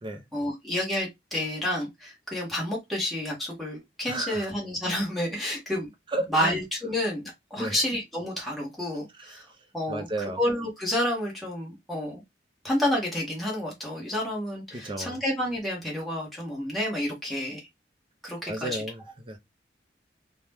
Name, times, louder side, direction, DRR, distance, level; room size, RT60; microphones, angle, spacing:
voice 1, 0.3-5.9 6.3-9.5 9.7-10.1 10.4-12.2 12.6-17.6 18.2-18.8, left 1 dB, ahead, 1.1 m, -30 dB
voice 2, 4.1-4.5 6.1-6.6 7.6-7.8 9.3-9.4 9.9-10.4 14.7-15.2 18.5-19.4, right 1 dB, 30° right, 0.6 m, -33 dB
2.8 x 2.1 x 3.4 m
head